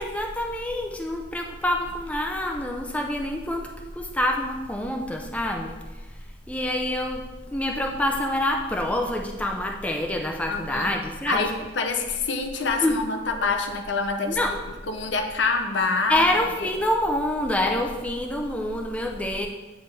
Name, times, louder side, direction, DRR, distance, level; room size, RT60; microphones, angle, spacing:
voice 1, 0.0-11.5 12.8-13.0 14.3-14.5 16.1-19.5, left 1 dB, 5° left, 2 dB, 0.4 m, -27 dB
voice 2, 10.5-10.9 11.3-14.4 14.9-16.2 16.6-16.7, left 4 dB, 65° left, 5 dB, 0.6 m, -26 dB
9.3 x 3.3 x 4.1 m, 1.2 s
head